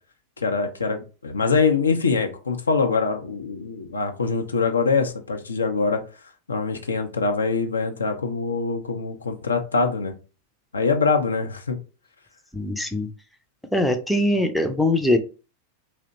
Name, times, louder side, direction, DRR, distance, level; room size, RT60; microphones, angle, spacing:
voice 1, 0.4-6.0 6.5-10.1 10.7-11.8, left 4 dB, 75° left, 5 dB, 0.5 m, -24 dB
voice 2, 12.5-13.1 13.7-15.2, left 1 dB, 5° left, 5 dB, 0.5 m, -22 dB
2.7 x 2.1 x 3.9 m, 0.34 s
figure-of-eight pair, 90°, 0 cm